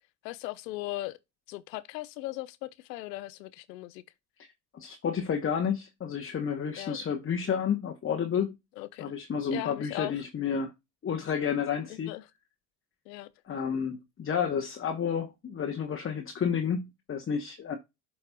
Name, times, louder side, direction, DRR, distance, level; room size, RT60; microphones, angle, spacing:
voice 1, 0.2-1.2 1.5-4.0 6.8-7.0 8.8-9.1 9.5-10.1 11.9-12.3 13.1-13.3, left 18 dB, 80° left, 0.8 m, -38 dB
voice 2, 4.7-8.5 9.0-10.7 11.0-12.1 13.5-17.8, left 7 dB, 25° left, 1.0 m, -30 dB
12.0 x 4.3 x 2.3 m
hypercardioid pair, 80°, 50 cm